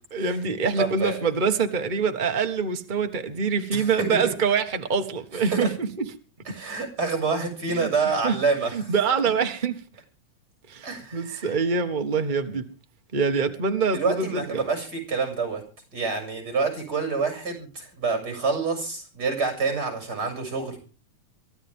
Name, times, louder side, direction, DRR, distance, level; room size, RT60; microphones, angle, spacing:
voice 1, 0.1-6.0 7.7-8.4 8.7-9.7 10.7-12.6 13.1-14.6, right 5 dB, 60° right, 0.5 m, -25 dB
voice 2, 0.8-1.3 3.7-4.2 5.5-5.7 6.5-9.0 10.8-11.5 13.9-15.6 15.9-20.8, right 4 dB, 30° right, 7.3 m, -27 dB
23.5 x 15.5 x 3.6 m
omnidirectional pair, 3.4 m